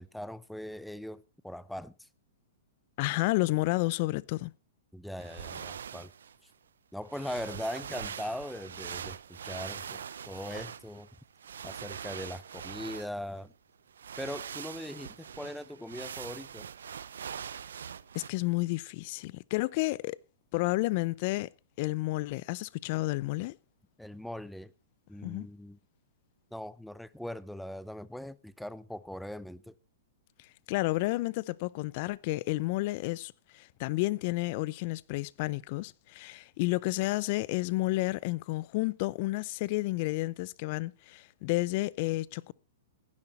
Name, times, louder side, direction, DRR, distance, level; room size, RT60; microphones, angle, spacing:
voice 1, 0.0-2.1 4.9-6.1 6.9-10.0 10.3-11.1 11.6-13.5 14.2-16.7 24.0-24.7 25.1-25.8 26.5-29.7, left 1 dB, ahead, 0.6 m, -40 dB
voice 2, 3.0-4.5 18.1-20.2 20.5-21.5 21.8-23.5 25.2-25.5 30.7-42.5, left 21 dB, 45° left, 0.6 m, -31 dB
sound 1, 5.2-6.4 7.0-13.4 13.9-18.3, right 8 dB, 85° right, 0.6 m, -42 dB
16.0 x 10.5 x 4.3 m
hypercardioid pair, 140°, 0 cm